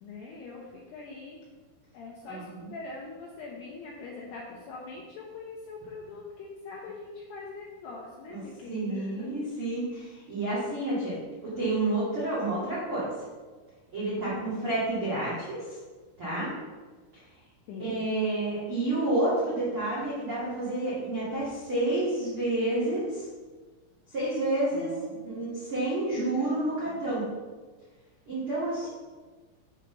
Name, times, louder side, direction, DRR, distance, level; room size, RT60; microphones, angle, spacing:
voice 1, 0.0-1.4 1.9-9.4 14.1-14.6 17.7-18.1 24.7-25.2 26.4-27.0 28.8-28.9, left 4 dB, 85° left, -2 dB, 2.3 m, -43 dB
voice 2, 2.2-2.7 8.3-8.4 8.7-13.1 13.9-15.8 16.2-16.5 17.8-23.3 24.1-24.9 25.2-27.2 28.3-28.9, right 2 dB, 45° right, -9 dB, 1.9 m, -29 dB
8.0 x 6.7 x 3.9 m, 1.3 s
omnidirectional pair, 5.9 m